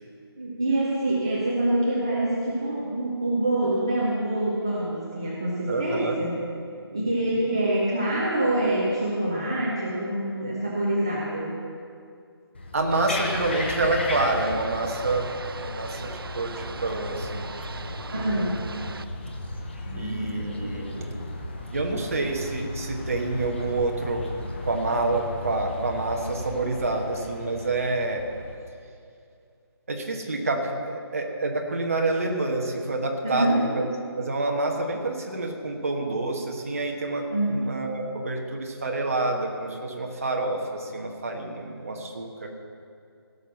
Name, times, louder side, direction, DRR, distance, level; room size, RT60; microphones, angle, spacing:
voice 1, 0.4-6.4 6.9-11.6 18.1-18.5 19.9-20.4 33.2-33.6 37.3-37.6, right 1 dB, 10° right, -5 dB, 0.5 m, -26 dB
voice 2, 5.7-6.1 12.7-15.3 15.5-17.4 19.9-21.1 21.7-24.2 24.6-28.2 29.9-33.8 34.2-42.5, right 2 dB, 35° right, 2 dB, 1.2 m, -28 dB
sound 1, 12.5-28.6, left 1 dB, 25° left, 0.9 m, -36 dB
sound 2, 12.9-19.1, right 4 dB, 60° right, 0.6 m, -39 dB
16.5 x 6.0 x 7.0 m, 2.4 s
hypercardioid pair, 175°, 14 cm